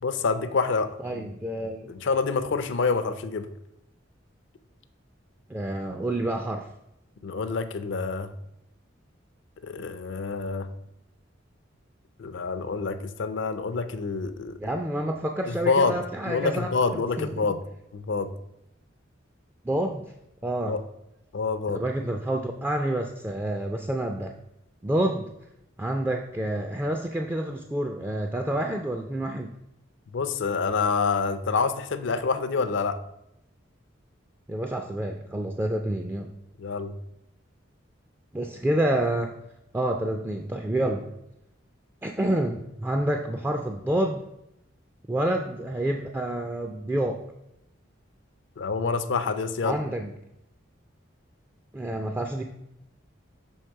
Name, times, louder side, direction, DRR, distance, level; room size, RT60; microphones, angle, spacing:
voice 1, 0.0-1.3 1.9-3.5 7.2-8.3 9.6-10.7 12.2-14.6 15.5-16.0 16.3-17.6 17.9-18.3 20.6-20.8 21.3-21.8 30.1-33.0 36.6-36.9 48.6-49.8, left 4 dB, 65° left, 10 dB, 0.5 m, -27 dB
voice 2, 1.0-1.9 5.5-6.7 14.6-16.7 17.2-17.6 19.6-20.0 20.4-20.8 21.7-24.3 24.8-25.3 25.8-29.5 34.5-36.3 38.3-39.3 39.7-41.1 42.0-44.2 45.1-47.2 49.6-50.1 51.7-52.4, right 1 dB, 10° right, 3 dB, 0.3 m, -28 dB
6.3 x 3.5 x 4.5 m, 0.84 s
head